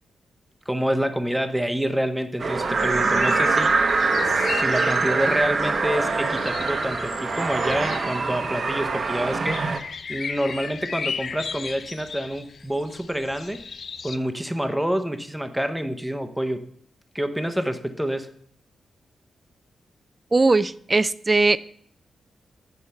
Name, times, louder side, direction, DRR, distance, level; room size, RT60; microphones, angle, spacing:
voice 1, 0.7-3.7 4.2-13.6 14.0-16.6 17.1-18.3, equal, 5° right, 8 dB, 0.7 m, -27 dB
sound 1, 2.4-9.8, right 4 dB, 45° right, 0.8 m, -24 dB
sound 2, 2.5-14.2, left 5 dB, 55° left, 0.3 m, -36 dB
voice 2, 20.3-21.6, right 3 dB, 25° right, 16 dB, 0.3 m, -19 dB
8.4 x 4.5 x 5.4 m, 0.63 s
cardioid pair, 100°, 0 cm